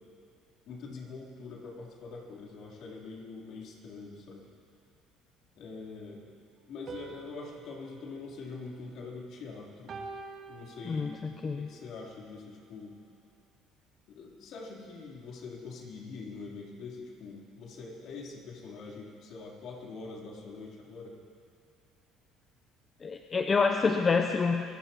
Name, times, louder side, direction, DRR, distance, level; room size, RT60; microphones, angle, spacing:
voice 1, 0.7-4.5 5.6-6.3 6.6-9.9 10.5-11.3 11.6-13.0 14.1-21.2, left 4 dB, 65° left, -2 dB, 3.7 m, -44 dB
sound 1, 6.9-9.3 9.9-11.4, right 4 dB, 50° right, 2.5 m, -47 dB
voice 2, 10.8-11.7 23.0-24.6, left 4 dB, 35° left, 4 dB, 0.8 m, -27 dB
26.0 x 17.5 x 3.1 m, 2.3 s
supercardioid pair, 80°, 0 cm